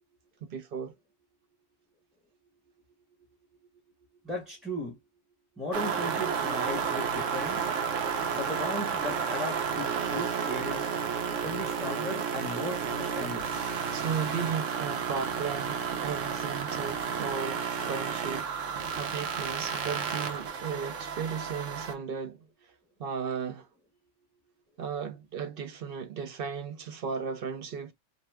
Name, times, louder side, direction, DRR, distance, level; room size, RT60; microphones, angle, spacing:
voice 1, 0.4-0.9 13.9-22.4 23.0-23.7 24.8-27.9, right 6 dB, 60° right, 0.7 m, -35 dB
voice 2, 4.2-5.0 5.6-7.7 8.3-10.9 11.4-13.6, left 1 dB, ahead, 0.9 m, -36 dB
sound 1, 5.7-21.9, right 6 dB, 90° right, 1.1 m, -32 dB
2.6 x 2.2 x 3.2 m
omnidirectional pair, 1.2 m